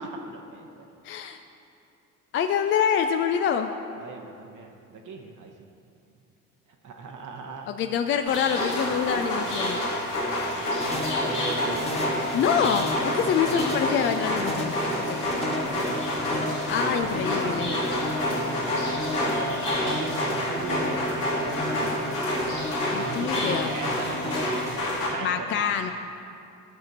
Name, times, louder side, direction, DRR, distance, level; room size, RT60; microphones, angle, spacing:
voice 1, 0.0-0.9 4.0-5.5 6.8-7.7 11.2-12.1 15.5-16.4 17.1-18.8 19.6-22.2 23.0-25.7, right 4 dB, 40° right, 2 dB, 0.9 m, -39 dB
voice 2, 1.0-1.4 2.3-3.7 7.7-9.8 12.3-15.2 16.7-17.7 22.9-23.7 25.2-25.9, left 7 dB, 30° left, 7 dB, 0.3 m, -26 dB
sound 1, 8.3-25.1, left 1 dB, 80° left, 2.1 m, -28 dB
sound 2, 10.8-24.4, left 2 dB, 15° left, 1.4 m, -34 dB
12.5 x 6.5 x 4.0 m, 2.6 s
figure-of-eight pair, 55°, 46 cm